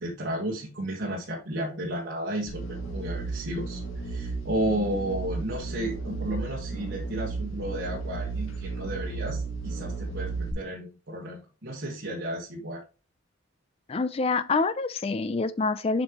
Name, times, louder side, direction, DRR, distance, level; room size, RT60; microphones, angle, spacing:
voice 1, 0.0-12.8, right 1 dB, 55° right, 1.4 m, -33 dB
sound 1, 2.5-10.5, right 4 dB, 85° left, 1.6 m, -34 dB
voice 2, 13.9-16.0, left 3 dB, 30° left, 0.3 m, -26 dB
7.1 x 5.3 x 2.9 m
head